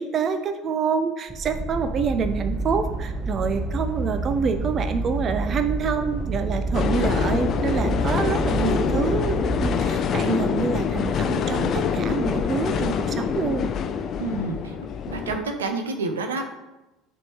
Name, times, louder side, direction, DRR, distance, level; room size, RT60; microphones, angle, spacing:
voice 1, 0.0-13.7, right 5 dB, 40° right, 9 dB, 0.5 m, -27 dB
sound 1, 1.3-9.8, right 2 dB, 15° right, 0.8 m, -28 dB
sound 2, 6.7-15.4, left 7 dB, 50° left, 0.5 m, -25 dB
voice 2, 14.2-14.8 15.1-16.4, right 3 dB, 85° right, 5 dB, 0.7 m, -28 dB
9.5 x 3.6 x 3.0 m, 1.0 s
hypercardioid pair, 70°, 0 cm